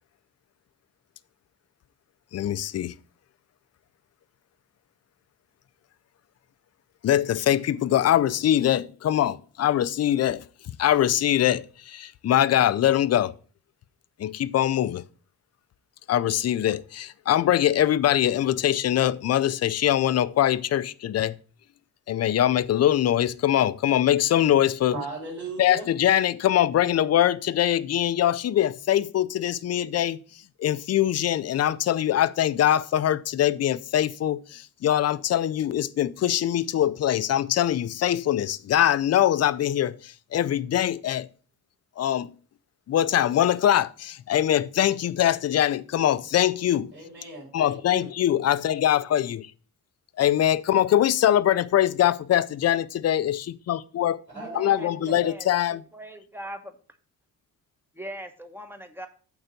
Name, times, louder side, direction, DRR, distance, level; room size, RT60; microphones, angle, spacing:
voice 1, 2.3-2.9 7.0-10.5 10.8-13.3 14.2-15.0 16.1-21.4 22.1-25.0 25.6-41.3 42.0-42.3 42.9-46.9 47.5-49.5 50.2-54.2 54.5-55.8, left 11 dB, 45° left, 0.5 m, -23 dB
voice 2, 24.9-25.9 46.9-48.1 54.3-55.2, right 3 dB, 35° right, 3.9 m, -37 dB
voice 3, 54.3-55.5 55.9-56.8 57.9-59.1, equal, 5° right, 1.0 m, -40 dB
8.9 x 4.0 x 6.6 m
cardioid pair, 135°, 34 cm